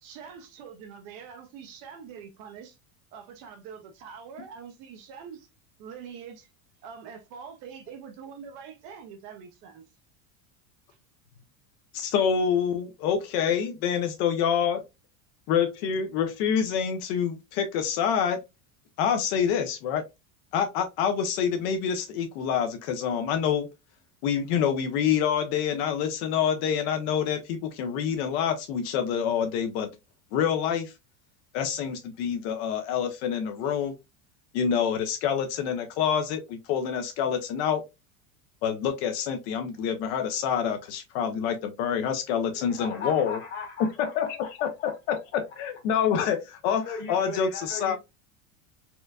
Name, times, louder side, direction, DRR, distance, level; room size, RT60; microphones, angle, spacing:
voice 1, 0.0-2.8 3.1-5.5 5.8-6.5 6.8-9.8, right 7 dB, 40° right, 0.5 m, -44 dB
voice 2, 11.9-14.8 15.5-18.4 19.0-20.0 20.5-23.7 24.2-29.9 30.3-30.9 31.5-33.9 34.5-37.8 38.6-43.4 44.0-48.0, left 8 dB, 50° left, 0.6 m, -27 dB
voice 3, 42.5-45.0 45.3-45.4 46.7-48.0, left 4 dB, 25° left, 1.1 m, -38 dB
4.3 x 2.5 x 2.2 m
supercardioid pair, 170°, 41 cm